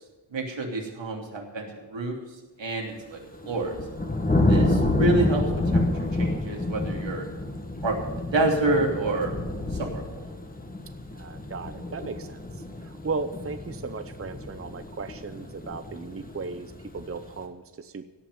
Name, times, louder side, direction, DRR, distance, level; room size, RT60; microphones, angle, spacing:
voice 1, 0.3-2.2 2.6-3.2 3.4-3.8 4.5-7.3 7.8-9.3 9.7-10.3, right 2 dB, 85° right, 0 dB, 3.2 m, -28 dB
sound 1, 3.2-17.4, left 2 dB, 20° left, 1.6 m, -28 dB
voice 2, 11.2-18.1, right 4 dB, 30° right, 10 dB, 0.7 m, -36 dB
17.0 x 6.0 x 9.7 m, 1.2 s
wide cardioid pair, 130°, 43 cm